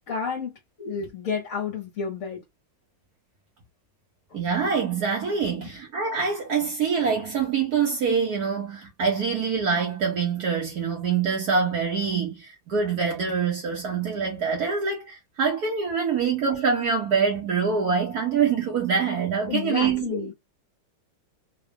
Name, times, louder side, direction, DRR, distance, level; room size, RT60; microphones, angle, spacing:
voice 1, 0.1-2.4 4.3-4.4 5.6-5.7 16.2-16.3 19.5-20.3, left 6 dB, 50° left, 1.2 m, -31 dB
voice 2, 4.3-20.3, right 5 dB, 60° right, 1.4 m, -25 dB
3.6 x 2.3 x 3.5 m
omnidirectional pair, 2.0 m